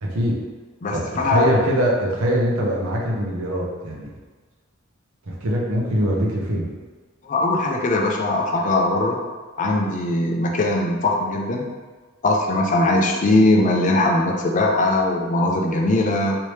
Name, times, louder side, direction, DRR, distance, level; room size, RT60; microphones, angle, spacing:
voice 1, 0.0-0.4 0.9-4.1 5.3-6.7, equal, 85° right, -3 dB, 0.8 m, -22 dB
voice 2, 0.8-1.6 7.2-9.2 9.6-11.7 12.2-16.4, left 2 dB, 40° left, 0 dB, 0.5 m, -20 dB
3.2 x 2.8 x 3.1 m, 1.4 s
head